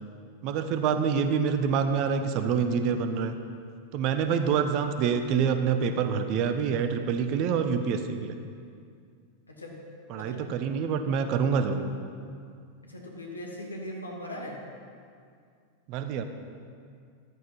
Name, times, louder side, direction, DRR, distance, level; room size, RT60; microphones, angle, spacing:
voice 1, 0.4-3.3 3.9-8.4 10.1-11.9 15.9-16.2, right 6 dB, 40° right, 8 dB, 1.1 m, -26 dB
voice 2, 9.5-9.8 10.1-10.4 12.8-14.6, left 1 dB, 80° left, -1 dB, 2.7 m, -39 dB
13.5 x 13.0 x 5.5 m, 2.3 s
figure-of-eight pair, 90°, 0 cm